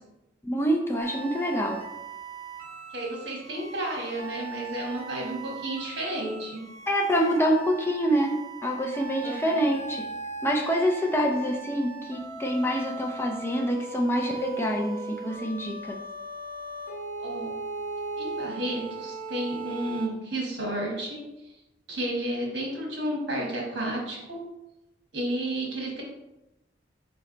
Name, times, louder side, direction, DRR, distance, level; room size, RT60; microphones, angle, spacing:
voice 1, 0.4-1.8 6.9-10.1 10.4-16.0, equal, 15° left, 0 dB, 0.4 m, -26 dB
sound 1, 1.0-20.1, right 4 dB, 50° right, 1.3 m, -38 dB
voice 2, 2.9-6.6 9.2-9.6 17.2-17.5 18.2-21.2 21.9-24.4 25.1-26.0, right 1 dB, 70° right, -2 dB, 1.4 m, -32 dB
4.0 x 3.3 x 3.8 m, 0.95 s
head